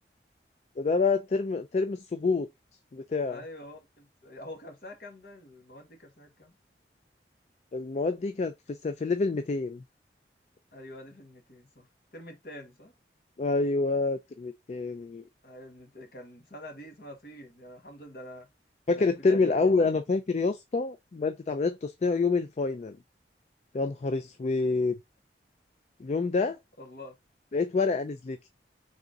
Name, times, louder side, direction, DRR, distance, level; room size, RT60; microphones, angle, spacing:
voice 1, 0.8-2.5 2.9-3.4 7.7-9.8 13.4-15.2 18.9-23.0 23.7-25.0 26.0-26.6 27.5-28.4, left 3 dB, 40° left, 0.3 m, -27 dB
voice 2, 3.3-6.6 10.7-11.9 12.1-12.9 15.4-18.5 18.9-19.5 26.8-27.1, left 1 dB, 55° left, 1.5 m, -46 dB
3.9 x 3.6 x 3.7 m
head